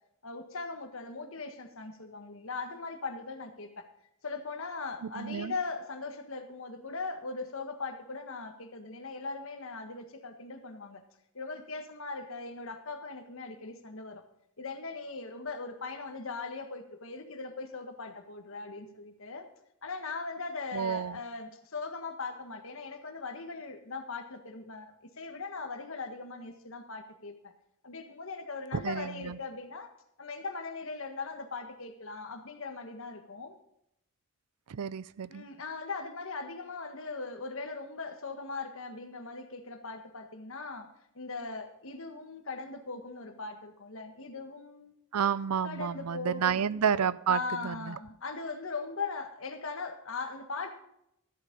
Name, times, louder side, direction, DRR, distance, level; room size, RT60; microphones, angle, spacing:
voice 1, 0.2-3.7 4.2-11.0 11.3-14.2 14.6-19.4 19.8-24.9 25.2-27.3 27.8-29.9 30.2-33.6 35.3-40.9 41.2-44.9 45.6-46.6 47.3-50.7, left 4 dB, 60° left, 6 dB, 1.6 m, -39 dB
voice 2, 5.0-5.5 20.7-21.2 28.7-29.4 34.7-35.5 45.1-48.0, right 7 dB, 85° right, 19 dB, 0.5 m, -30 dB
13.5 x 8.5 x 5.3 m, 0.77 s
head